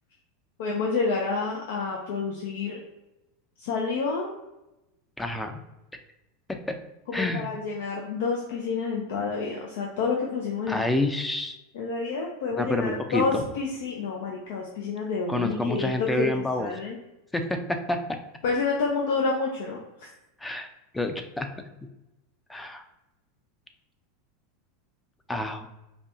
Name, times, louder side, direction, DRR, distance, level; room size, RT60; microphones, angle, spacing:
voice 1, 0.6-2.8 3.6-4.3 7.1-10.8 11.7-17.0 18.4-20.1, left 4 dB, 70° left, -1 dB, 0.6 m, -29 dB
voice 2, 5.2-5.6 6.5-6.8 7.1-7.5 10.7-11.6 12.6-13.4 15.3-16.7 17.3-18.0 20.4-20.7 20.9-21.5 22.5-22.8 25.3-25.7, left 2 dB, 10° left, 6 dB, 0.5 m, -28 dB
5.1 x 2.3 x 2.6 m, 0.95 s
hypercardioid pair, 115°, 0 cm